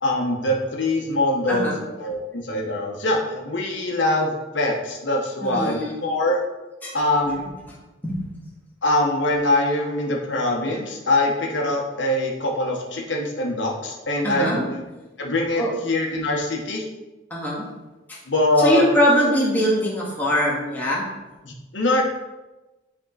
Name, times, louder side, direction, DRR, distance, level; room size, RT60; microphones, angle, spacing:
voice 1, 0.0-1.7 2.0-6.4 6.9-7.5 8.8-14.8 15.2-16.8 18.3-18.8 21.4-22.0, left 1 dB, 85° left, 0 dB, 1.2 m, -23 dB
voice 2, 1.5-1.8 5.4-6.0 6.8-7.0 8.0-8.2 14.2-14.7 15.6-15.7 17.3-17.7 18.1-18.2 18.6-21.1, equal, 10° left, -6 dB, 2.0 m, -22 dB
11.0 x 3.7 x 4.1 m, 1.1 s
head